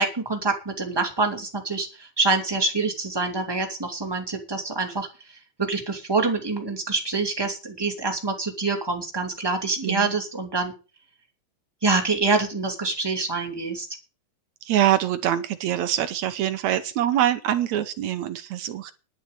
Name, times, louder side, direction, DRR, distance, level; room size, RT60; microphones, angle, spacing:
voice 1, 0.0-10.7 11.8-13.9, right 3 dB, 10° right, 2 dB, 2.1 m, -26 dB
voice 2, 9.8-10.2 14.6-18.9, right 11 dB, 70° right, 11 dB, 1.8 m, -24 dB
11.0 x 7.4 x 8.3 m, 0.32 s
omnidirectional pair, 4.0 m